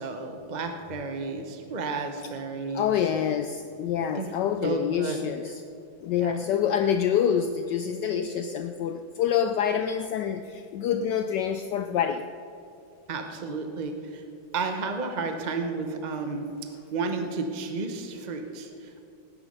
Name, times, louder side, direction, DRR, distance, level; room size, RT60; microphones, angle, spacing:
voice 1, 0.0-2.9 4.1-4.3 4.6-5.2 6.2-6.4 13.1-14.2 14.5-16.5 16.9-19.0, right 4 dB, 35° right, 5 dB, 0.8 m, -32 dB
voice 2, 2.7-5.6 6.0-12.3, left 8 dB, 70° left, 8 dB, 1.1 m, -26 dB
19.0 x 9.8 x 5.4 m, 2.6 s
omnidirectional pair, 2.1 m